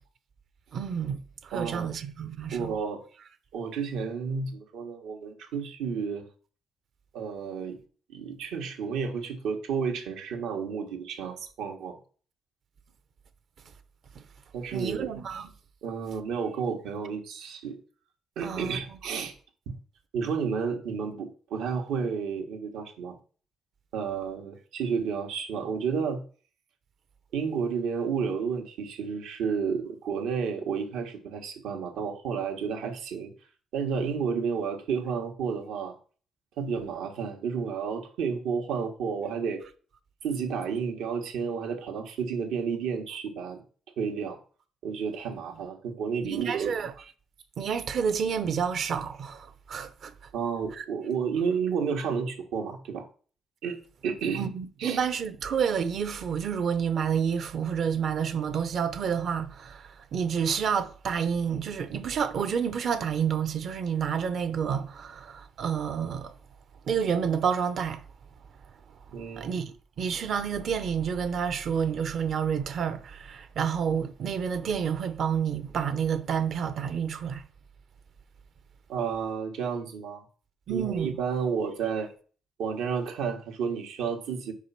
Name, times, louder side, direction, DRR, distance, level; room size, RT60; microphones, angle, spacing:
voice 1, 0.7-2.7 14.1-14.3 14.7-15.5 18.4-19.0 46.2-46.9 47.6-50.1 50.7-50.8 54.4-66.3 66.8-68.0 69.4-77.4 80.7-81.2, right 7 dB, 60° right, 0.7 m, -29 dB
voice 2, 1.5-1.9 2.5-3.0 3.5-6.3 7.1-7.8 8.1-12.0 14.5-15.1 15.8-17.8 18.3-19.3 19.7-19.8 20.1-23.1 23.9-26.2 27.3-33.3 33.7-36.0 36.6-39.6 40.2-43.6 44.0-44.4 44.8-46.7 50.3-53.1 53.6-54.5 54.8-55.0 69.1-69.5 78.9-80.2 80.7-82.1 82.6-84.5, right 6 dB, 90° right, 1.4 m, -31 dB
5.1 x 4.8 x 5.7 m
cardioid pair, 90°, 0 cm